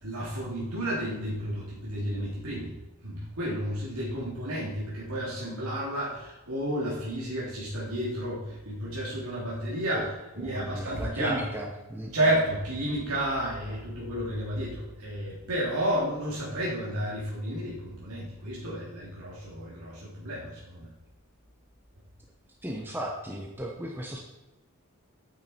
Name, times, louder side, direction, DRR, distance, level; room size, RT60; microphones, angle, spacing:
voice 1, 0.0-2.8 3.0-11.5 12.1-20.9, right 1 dB, 85° right, -6 dB, 3.1 m, -31 dB
voice 2, 10.4-12.1 13.6-13.7 22.6-24.2, equal, 10° right, -1 dB, 1.0 m, -36 dB
9.6 x 8.8 x 4.4 m, 1.1 s
head